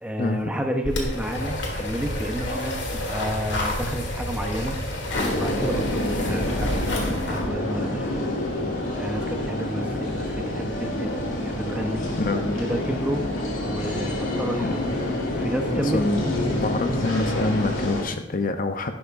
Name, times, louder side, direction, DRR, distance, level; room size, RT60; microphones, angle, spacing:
voice 1, 0.0-4.8 5.3-8.3 8.9-11.1 11.4-12.1 12.6-13.3 13.6-15.0 15.4-16.1, equal, 5° right, 3 dB, 0.9 m, -31 dB
sound 1, 0.8-7.5, left 1 dB, 60° left, 1.8 m, -29 dB
sound 2, 5.1-18.0, left 1 dB, 75° left, 2.3 m, -27 dB
voice 2, 16.6-18.9, left 2 dB, 40° left, 7 dB, 0.7 m, -26 dB
12.0 x 10.0 x 2.6 m, 0.84 s
head